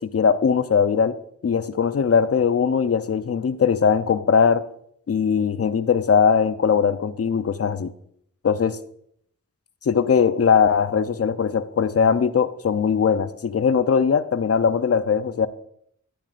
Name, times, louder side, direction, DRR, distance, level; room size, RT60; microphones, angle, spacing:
voice 1, 0.1-1.2 1.4-4.6 5.1-7.9 8.4-8.8 9.8-15.5, left 6 dB, 50° left, 13 dB, 0.6 m, -20 dB
12.0 x 9.0 x 2.5 m, 0.70 s
cardioid pair, 50°, 30 cm